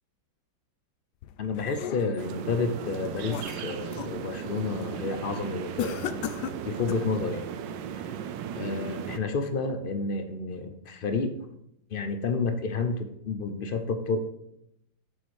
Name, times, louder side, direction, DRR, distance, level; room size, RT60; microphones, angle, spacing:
sound 1, 1.2-2.3 2.8-4.2 4.6-4.9 5.8-7.1, left 11 dB, 75° left, 1.0 m, -37 dB
voice 1, 1.4-6.2 6.6-7.5 8.0-8.1 8.6-11.3 11.9-14.2, left 4 dB, 55° left, 7 dB, 0.6 m, -30 dB
sound 2, 2.2-9.2, right 8 dB, 75° right, 1.3 m, -36 dB
7.7 x 5.6 x 6.4 m, 0.78 s
omnidirectional pair, 2.1 m